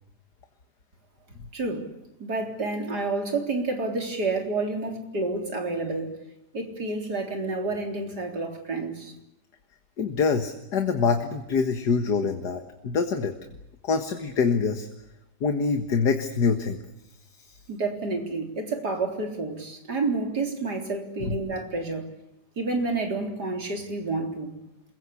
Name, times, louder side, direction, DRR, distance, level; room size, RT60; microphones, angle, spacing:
voice 1, 1.5-1.9 2.2-6.2 6.5-9.1 17.7-22.1 22.6-24.5, right 3 dB, 70° right, 4 dB, 4.3 m, -29 dB
voice 2, 10.0-13.3 13.8-14.9 15.4-16.8 17.4-17.5 21.2-21.4, left 5 dB, 75° left, 7 dB, 2.2 m, -25 dB
27.5 x 22.0 x 8.5 m, 0.86 s
omnidirectional pair, 1.8 m